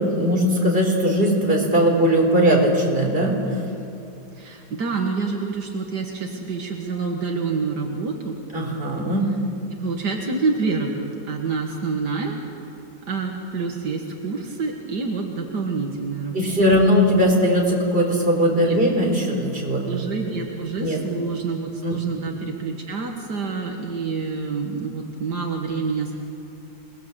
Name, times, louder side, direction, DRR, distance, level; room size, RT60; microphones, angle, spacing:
voice 1, 0.0-3.6 8.5-9.2 16.3-20.0 20.8-21.0 21.8-22.0, equal, 35° right, 0 dB, 4.6 m, -19 dB
voice 2, 4.3-8.4 9.7-12.4 13.1-16.5 18.5-18.8 19.9-26.1, right 4 dB, 80° right, 1 dB, 2.3 m, -27 dB
28.0 x 20.0 x 7.5 m, 2.6 s
omnidirectional pair, 1.8 m